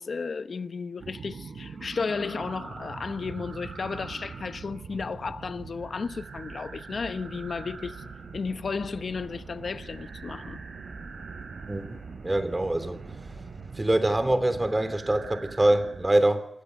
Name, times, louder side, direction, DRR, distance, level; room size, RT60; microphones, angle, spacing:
voice 1, 0.0-8.0 8.3-10.6, left 4 dB, 60° left, 1.1 m, -33 dB
sound 1, 1.0-16.1, right 5 dB, 90° right, 6.1 m, -43 dB
sound 2, 4.9-14.4, right 3 dB, 60° right, 7.4 m, -47 dB
voice 2, 11.7-13.0 13.7-16.5, right 1 dB, 20° right, 3.2 m, -24 dB
28.0 x 21.0 x 6.6 m
wide cardioid pair, 100°, 0 cm